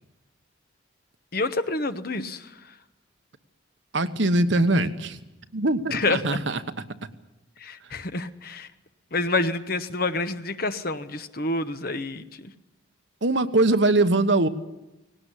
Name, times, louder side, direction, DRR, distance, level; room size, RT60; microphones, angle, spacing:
voice 1, 1.3-2.6 5.9-6.4 7.6-8.7 9.1-12.5, left 2 dB, 45° left, 10 dB, 1.0 m, -28 dB
voice 2, 3.9-5.2 5.5-6.6 13.2-14.5, right 2 dB, 65° right, 9 dB, 1.2 m, -22 dB
18.5 x 18.0 x 10.0 m, 0.98 s
head